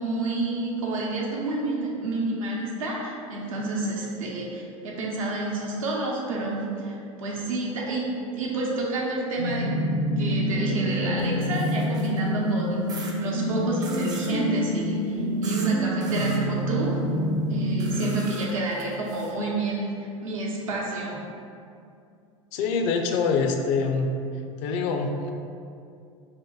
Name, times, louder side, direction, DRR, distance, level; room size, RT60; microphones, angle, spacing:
voice 1, 0.0-8.0 8.3-9.7 10.2-17.0 17.5-19.9 20.2-21.2, right 2 dB, 75° right, -3 dB, 0.8 m, -29 dB
sound 1, 9.4-18.1, equal, 90° left, 1.3 m, -27 dB
sound 2, 11.2-12.3 12.9-13.1 13.8-14.3 15.4-15.7 16.0-16.4 17.8-19.3, right 2 dB, 25° right, 0.5 m, -41 dB
voice 2, 22.5-24.1 24.6-25.3, left 4 dB, 55° left, 4 dB, 0.4 m, -25 dB
2.8 x 2.6 x 3.7 m, 2.5 s
hypercardioid pair, 85°, 17 cm